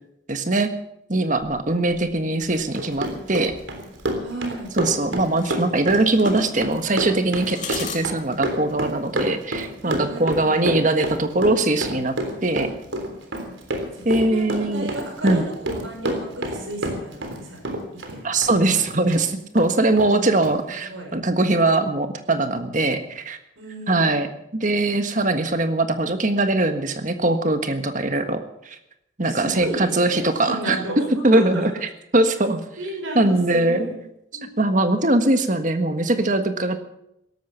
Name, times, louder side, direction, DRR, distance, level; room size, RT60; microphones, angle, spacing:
voice 1, 0.3-0.7 1.1-3.5 4.8-12.2 12.4-12.7 14.0-14.9 15.2-15.5 18.2-23.4 23.9-24.3 24.5-28.4 28.6-28.8 29.2-30.8 31.2-31.7 32.1-32.6 33.1-33.9 34.6-36.8, right 2 dB, 40° right, 7 dB, 1.5 m, -21 dB
sound 1, 1.3-9.1, left 6 dB, 40° left, 2.9 m, -41 dB
voice 2, 1.7-2.5 4.2-4.8 9.8-10.6 13.9-17.7 18.1-19.0 19.9-20.4 20.7-21.1 23.6-24.2 29.2-31.7 32.8-33.9 34.3-34.5, right 1 dB, 90° right, 1 dB, 6.3 m, -34 dB
Run, 2.6-17.4 17.6-19.2 19.6-19.7 20.0-20.1 20.4-20.5, right 1 dB, 75° right, 3.5 m, -28 dB
17.0 x 13.5 x 5.8 m, 0.79 s
head